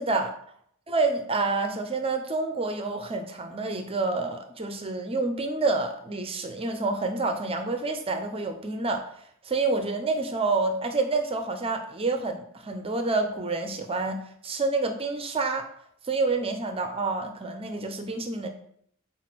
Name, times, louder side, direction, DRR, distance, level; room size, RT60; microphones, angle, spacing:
voice 1, 0.0-0.3 0.9-9.1 9.4-15.7 16.0-18.5, right 3 dB, 30° right, 6 dB, 0.8 m, -28 dB
8.0 x 4.9 x 6.1 m, 0.67 s
head